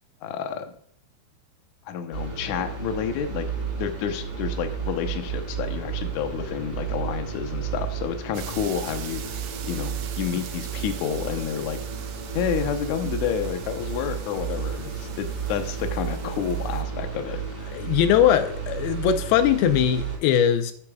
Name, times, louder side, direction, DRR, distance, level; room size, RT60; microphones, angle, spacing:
voice 1, 0.2-0.7 1.9-3.5 3.8-9.2 9.6-11.8 12.3-17.4, left 8 dB, 65° left, 6 dB, 2.0 m, -29 dB
sound 1, 2.1-20.2, right 7 dB, 20° right, 3.6 m, -32 dB
sound 2, 8.3-16.8, right 9 dB, 75° right, 2.7 m, -43 dB
voice 2, 17.7-20.7, left 9 dB, 90° left, 8 dB, 2.8 m, -20 dB
13.0 x 8.5 x 2.4 m, 0.63 s
omnidirectional pair, 4.4 m